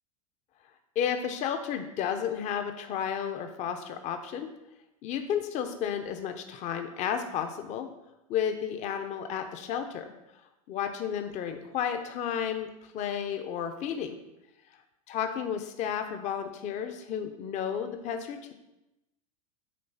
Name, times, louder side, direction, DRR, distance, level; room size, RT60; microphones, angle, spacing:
voice 1, 0.9-4.5 5.0-7.9 8.3-10.1 10.7-14.1 15.1-18.5, left 8 dB, 40° left, 7 dB, 0.9 m, -32 dB
8.6 x 3.8 x 5.6 m, 0.93 s
hypercardioid pair, 110°, 18 cm